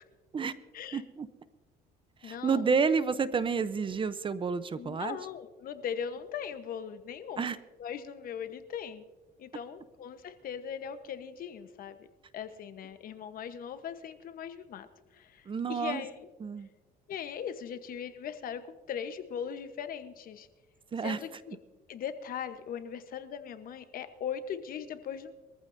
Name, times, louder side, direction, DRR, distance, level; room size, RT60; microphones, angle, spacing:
voice 1, 0.9-1.3 2.2-5.2 7.4-7.6 15.5-16.0 16.4-16.7 20.9-21.2, right 5 dB, 30° right, 14 dB, 0.7 m, -30 dB
voice 2, 2.2-2.6 4.8-7.5 7.8-9.0 9.4-12.1 12.3-14.9 15.1-16.3 17.1-20.5 21.0-21.6 21.9-25.3, left 8 dB, 60° left, 10 dB, 1.1 m, -39 dB
23.0 x 14.5 x 2.7 m, 1.2 s
cardioid pair, 110°, 17 cm